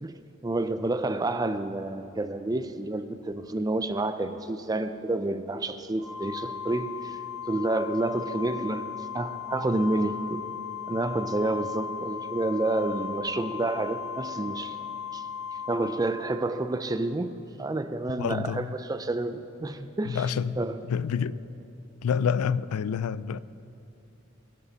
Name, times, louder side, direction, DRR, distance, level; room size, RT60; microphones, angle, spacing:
voice 1, 0.0-7.2 7.5-10.4 10.9-14.8 15.1-15.2 15.7-20.2 20.6-20.8, right 2 dB, 15° right, 0.4 m, -29 dB
Organ, 6.0-16.7, left 7 dB, 45° left, 2.8 m, -37 dB
voice 2, 18.2-18.7 20.0-20.6 20.9-21.4 22.0-23.4, left 7 dB, 85° left, 0.3 m, -28 dB
22.0 x 8.3 x 4.0 m
head